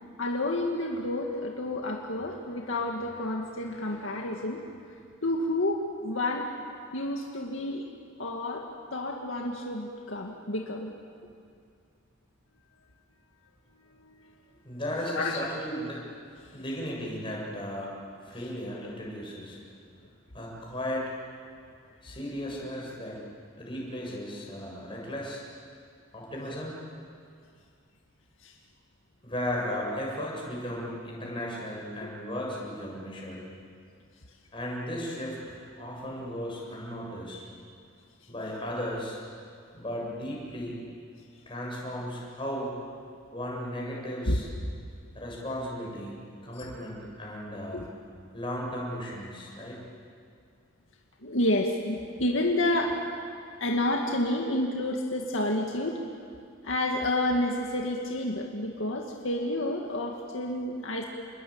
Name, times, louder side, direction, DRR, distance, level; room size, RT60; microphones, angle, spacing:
voice 1, 0.2-4.6 5.2-6.5 6.9-7.9 8.2-8.7 8.9-10.9 14.0-14.3 15.2-15.5 16.5-16.6 28.4-28.6 32.0-32.1 44.2-44.4 47.7-47.9 51.2-53.0 53.6-56.0 56.6-61.0, left 1 dB, 70° left, 0 dB, 2.1 m, -29 dB
voice 2, 14.6-16.0 16.5-17.9 18.2-19.6 20.3-21.1 22.0-23.2 23.6-25.4 26.1-26.7 29.2-33.4 34.5-37.4 38.3-39.2 39.7-40.8 41.5-42.7 43.3-44.5 45.1-47.8 48.3-49.8, equal, 25° left, -3 dB, 7.4 m, -35 dB
30.0 x 21.5 x 8.9 m, 2.3 s
head